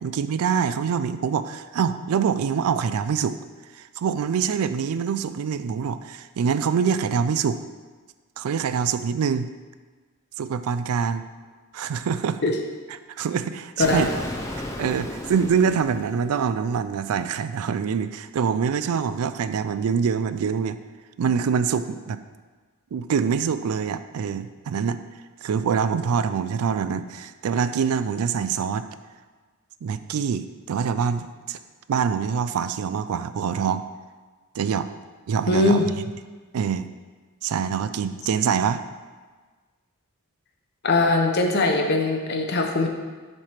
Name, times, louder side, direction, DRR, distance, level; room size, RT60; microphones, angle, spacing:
voice 1, 0.0-3.4 3.8-7.6 8.4-9.5 10.4-11.2 11.7-12.4 13.2-14.1 14.8-20.8 21.2-22.2 22.9-25.0 25.4-28.9 29.8-31.6 31.9-33.8 34.5-34.9 35.3-36.0 36.5-36.9 37.4-38.8, right 6 dB, 80° right, 11 dB, 0.4 m, -25 dB
Explosion, 13.8-16.7, left 1 dB, 15° left, 0.5 m, -34 dB
voice 2, 35.5-35.8 40.8-42.9, left 3 dB, 50° left, 2 dB, 0.8 m, -21 dB
7.4 x 3.3 x 5.7 m, 1.4 s
head